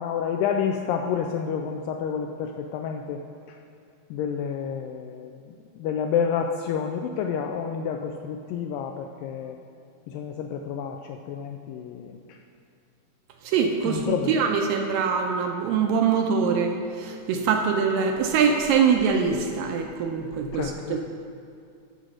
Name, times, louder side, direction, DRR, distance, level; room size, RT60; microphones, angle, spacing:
voice 1, 0.0-3.2 4.1-5.3 5.8-9.6 10.1-12.2 13.9-14.4 20.5-21.0, left 7 dB, 85° left, 4 dB, 2.0 m, -29 dB
voice 2, 13.4-21.0, right 6 dB, 80° right, 3 dB, 2.2 m, -23 dB
12.0 x 5.0 x 6.4 m, 2.5 s
omnidirectional pair, 4.4 m